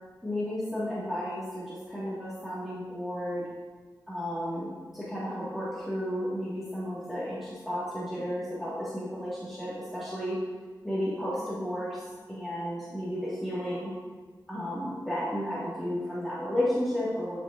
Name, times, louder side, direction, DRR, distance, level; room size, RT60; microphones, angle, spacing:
voice 1, 0.2-3.5 4.1-4.7 4.9-10.4 10.8-12.0 12.3-13.9 14.5-17.4, equal, ahead, -11 dB, 1.7 m, -33 dB
10.5 x 4.5 x 2.5 m, 1.4 s
wide cardioid pair, 70°, 8 cm